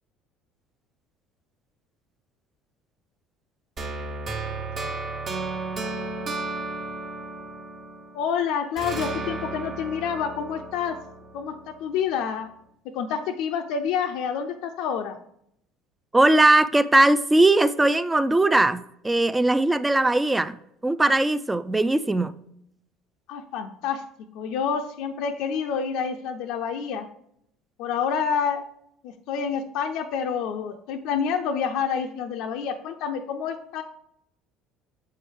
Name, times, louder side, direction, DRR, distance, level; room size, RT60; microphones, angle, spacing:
sound 1, 3.8-8.3 8.8-11.8, right 3 dB, 45° right, 1.1 m, -33 dB
voice 1, 8.1-11.0 11.3-11.5 11.8-12.5 12.9-15.2 23.3-24.0 24.3-27.1 27.8-28.6 29.0-33.8, left 7 dB, 70° left, 5 dB, 0.4 m, -28 dB
voice 2, 16.1-20.6 20.8-22.3, right 2 dB, 15° right, 12 dB, 0.3 m, -20 dB
6.8 x 4.5 x 3.5 m, 0.72 s
hypercardioid pair, 75°, 0 cm